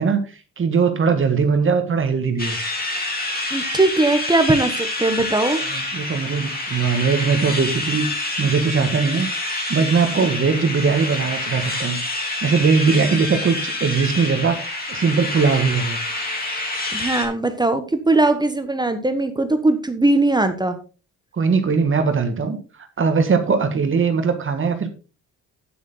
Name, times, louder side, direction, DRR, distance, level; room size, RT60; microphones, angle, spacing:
voice 1, 0.0-2.6 5.7-16.0 21.3-24.9, right 5 dB, 40° right, 8 dB, 1.7 m, -20 dB
sound 1, 2.4-17.3, left 2 dB, 30° left, 3.4 m, -27 dB
voice 2, 3.5-5.6 16.9-20.8, right 2 dB, 15° right, 9 dB, 1.2 m, -19 dB
9.5 x 8.3 x 3.8 m, 0.34 s
cardioid pair, 90°, 30 cm